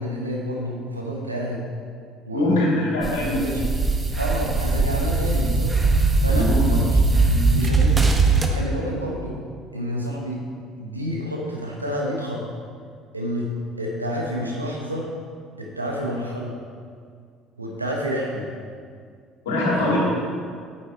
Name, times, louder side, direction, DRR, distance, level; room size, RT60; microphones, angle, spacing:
voice 1, 0.0-1.7 2.3-3.7 4.2-5.8 6.2-8.1 8.4-9.4 9.7-10.4 10.8-12.4 13.1-13.5 13.8-15.1 15.6-16.6 17.6-18.5 19.8-20.0, equal, 90° right, -2 dB, 1.2 m, -29 dB
voice 2, 2.3-3.3 6.2-6.6 19.4-20.0, left 1 dB, 70° left, -4 dB, 2.5 m, -22 dB
sound 1, 3.0-8.5, right 3 dB, 20° right, 1.0 m, -20 dB
8.9 x 7.5 x 4.5 m, 2.1 s
figure-of-eight pair, 55°, 0 cm